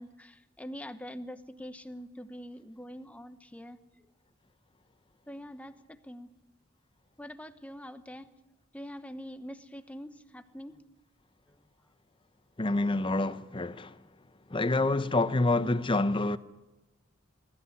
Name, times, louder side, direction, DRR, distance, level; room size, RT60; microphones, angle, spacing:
voice 1, 0.0-3.8 5.3-6.3 7.2-8.3 8.7-10.8, equal, 5° left, 1.0 m, -44 dB
voice 2, 12.6-13.9 14.5-16.4, left 2 dB, 25° left, 0.7 m, -27 dB
24.5 x 14.0 x 9.7 m
head